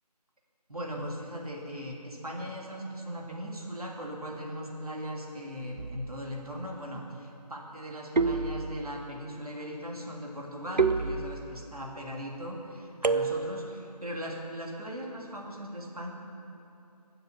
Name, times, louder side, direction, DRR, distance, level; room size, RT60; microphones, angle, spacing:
voice 1, 0.7-16.1, equal, 60° right, -2 dB, 2.9 m, -39 dB
sound 1, 5.8-6.3 8.2-9.1 10.8-11.7 13.0-13.8, right 4 dB, 90° right, 0.7 m, -29 dB
22.0 x 7.8 x 5.7 m, 2.9 s
figure-of-eight pair, 175°, 21 cm